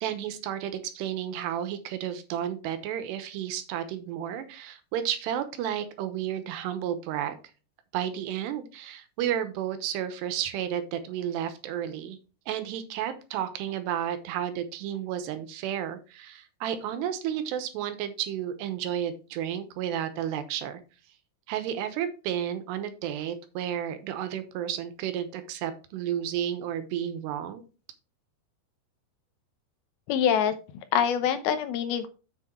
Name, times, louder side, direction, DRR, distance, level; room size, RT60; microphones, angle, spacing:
voice 1, 0.0-7.4 7.9-12.2 12.5-20.8 21.5-27.6, right 10 dB, 90° right, 10 dB, 3.2 m, -32 dB
voice 2, 30.1-30.5 30.9-32.1, left 8 dB, 75° left, 10 dB, 2.5 m, -24 dB
7.5 x 6.2 x 4.5 m, 0.33 s
omnidirectional pair, 4.8 m